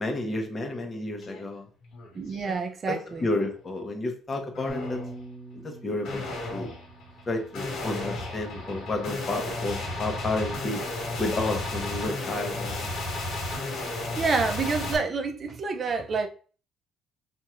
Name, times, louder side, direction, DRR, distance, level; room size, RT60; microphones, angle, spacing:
voice 1, 0.0-1.7 2.9-5.0 5.5-6.7 7.3-10.8 11.2-12.9, left 2 dB, 30° left, 1.0 m, -31 dB
sound 1, 1.2-1.4 1.8-2.5 3.0-3.5 4.5-5.2 6.0-15.0, left 2 dB, 75° left, 1.6 m, -34 dB
voice 2, 2.1-3.3 13.9-16.3, right 4 dB, 40° right, 0.4 m, -28 dB
Bass guitar, 4.7-10.9, equal, 10° left, 1.3 m, -46 dB
4.3 x 2.7 x 2.4 m
cardioid pair, 105°, 0 cm